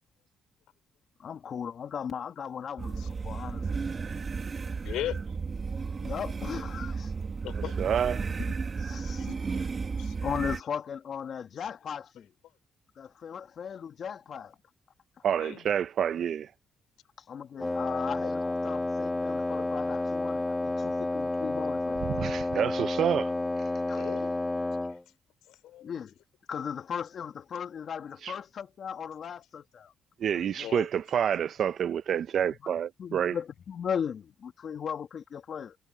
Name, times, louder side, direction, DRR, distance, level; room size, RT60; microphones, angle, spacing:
voice 1, 1.2-3.9 6.0-7.1 8.5-9.7 10.2-12.3 13.0-14.6 17.3-22.0 23.9-24.0 25.8-26.2 26.5-29.9 30.3-30.7 33.0-35.8, left 7 dB, 55° left, 2.5 m, -37 dB
sound 1, 2.8-10.6, right 5 dB, 35° right, 2.3 m, -33 dB
voice 2, 4.8-5.2 7.4-7.8 9.0-9.6 10.0-10.1 15.4-15.7 23.9-24.3 25.5-25.8 30.6-30.9, left 14 dB, 90° left, 4.9 m, -38 dB
voice 3, 7.5-8.2 15.2-16.5 22.0-23.3 28.2-28.4 30.2-33.4, right 9 dB, 60° right, 0.9 m, -28 dB
Wind instrument woodwind instrument, 17.6-25.0, left 2 dB, 15° left, 1.8 m, -30 dB
cardioid pair, 90°, 0 cm